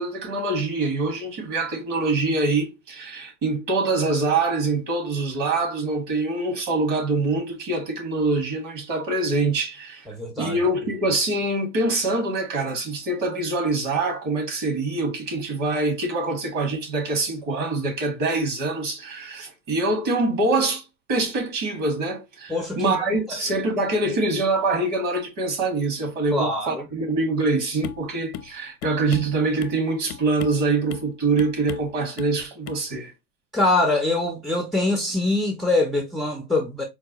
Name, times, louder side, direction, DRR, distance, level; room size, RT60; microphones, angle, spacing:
voice 1, 0.0-10.1 10.4-33.1, right 3 dB, 45° right, 1.8 m, -24 dB
voice 2, 10.1-10.6 22.5-23.0 23.3-23.4 26.3-26.9 33.5-36.8, left 2 dB, ahead, 0.4 m, -23 dB
sound 1, 27.8-28.1 28.3-28.5 28.8-29.8 30.1-30.6 30.9-31.1 31.4-31.9 32.2-32.4 32.7-32.8, left 10 dB, 80° left, 0.7 m, -36 dB
4.5 x 2.2 x 2.9 m
supercardioid pair, 125°, 43 cm